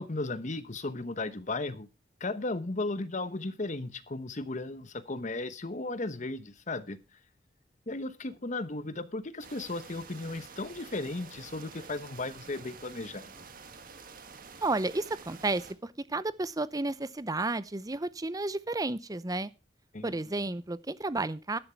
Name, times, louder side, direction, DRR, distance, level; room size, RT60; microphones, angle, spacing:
voice 1, 0.0-1.9 2.2-7.0 7.9-13.3 19.9-20.1, left 2 dB, 45° left, 1.0 m, -35 dB
sound 1, 9.4-15.7, right 5 dB, 50° right, 1.6 m, -49 dB
voice 2, 14.6-19.5 20.0-21.6, right 2 dB, 20° right, 0.7 m, -32 dB
11.5 x 11.0 x 4.5 m
head